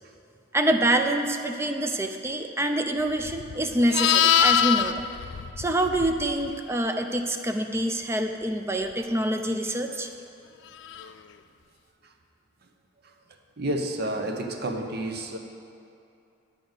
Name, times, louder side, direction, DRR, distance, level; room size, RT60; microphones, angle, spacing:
voice 1, 0.5-5.0 5.6-10.1, right 1 dB, 15° right, 5 dB, 0.4 m, -26 dB
Livestock farm animals working animals, 3.2-6.5 10.8-11.1, left 9 dB, 65° left, 0.3 m, -24 dB
voice 2, 13.6-15.4, right 1 dB, 55° right, 4 dB, 0.9 m, -30 dB
11.0 x 5.1 x 8.0 m, 2.6 s
head